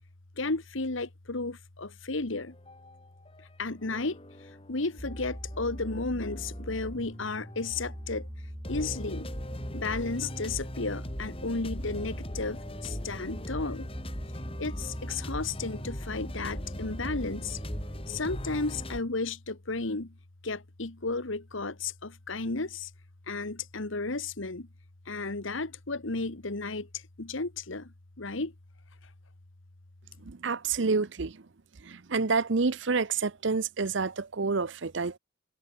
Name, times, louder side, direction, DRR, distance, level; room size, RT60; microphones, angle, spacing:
voice 1, 0.4-2.5 3.6-4.2 4.7-8.3 8.7-9.3 9.7-13.9 14.6-17.6 18.1-20.1 20.4-22.9 23.3-24.7 25.1-26.9 27.2-27.9 28.2-28.5, left 3 dB, 75° left, 1.6 m, -33 dB
sound 1, 2.3-3.4 3.7-8.1 8.6-19.0, equal, 25° left, 4.7 m, -40 dB
sound 2, 5.0-18.8, equal, 15° right, 7.1 m, -42 dB
voice 2, 30.3-31.4 31.8-35.2, right 4 dB, 65° right, 0.7 m, -28 dB
head